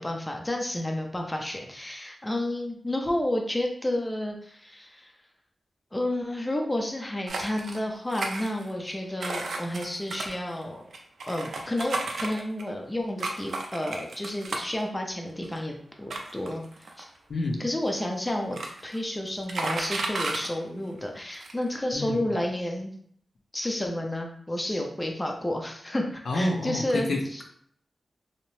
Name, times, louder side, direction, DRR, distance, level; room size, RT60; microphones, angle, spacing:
voice 1, 0.0-5.1 5.9-10.9 11.3-16.6 17.0-17.1 17.6-22.9 23.5-27.4, left 1 dB, 15° left, 1 dB, 0.4 m, -31 dB
sound 1, 7.3-7.8 8.1-8.9 9.2-12.7 13.2-14.8 15.4-15.5 16.1-17.2 18.0-18.1 18.3-19.0 19.3-20.5 21.0-21.1 21.3-21.6, right 3 dB, 85° right, 0.4 m, -33 dB
voice 2, 17.3-17.6 21.9-22.2 26.3-27.4, left 2 dB, 70° left, 1 dB, 0.5 m, -28 dB
2.6 x 2.0 x 3.0 m, 0.63 s
wide cardioid pair, 115°, 0 cm